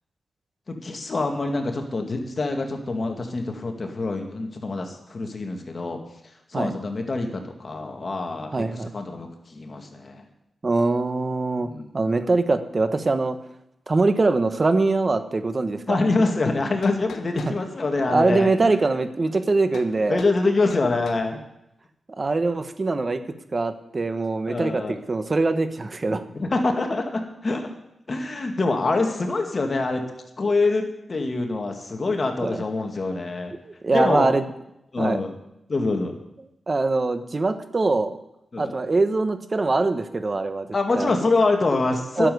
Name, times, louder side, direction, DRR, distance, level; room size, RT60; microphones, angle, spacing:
voice 1, 0.7-6.0 6.5-10.2 11.6-11.9 15.9-18.8 20.1-21.4 24.5-25.0 26.3-27.7 28.1-30.0 30.4-33.5 33.9-34.3 34.9-35.3 35.7-36.1 38.5-38.7 40.7-42.3, left 3 dB, 45° left, 4 dB, 2.1 m, -25 dB
voice 2, 8.5-8.9 10.6-13.4 13.9-16.0 18.1-20.2 22.1-23.2 23.5-26.2 32.4-32.6 33.6-34.4 35.0-35.2 36.7-38.2 38.6-40.7 41.0-41.1 42.2-42.3, right 3 dB, 40° right, 10 dB, 1.2 m, -23 dB
sound 1, 16.5-17.6 19.7-19.9 20.2-20.4 20.7-21.3, left 6 dB, 85° left, 1.2 m, -42 dB
11.5 x 7.4 x 9.5 m, 0.85 s
cardioid pair, 65°, 0 cm